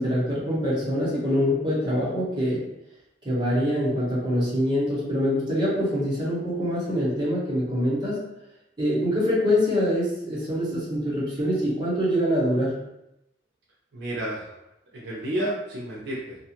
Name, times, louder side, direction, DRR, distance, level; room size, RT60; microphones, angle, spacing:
voice 1, 0.0-2.6 3.2-8.3 8.8-12.7, equal, 25° right, -8 dB, 1.1 m, -24 dB
voice 2, 13.9-14.5 14.9-16.4, right 1 dB, 65° right, -5 dB, 0.6 m, -31 dB
2.5 x 2.3 x 2.9 m, 0.87 s
head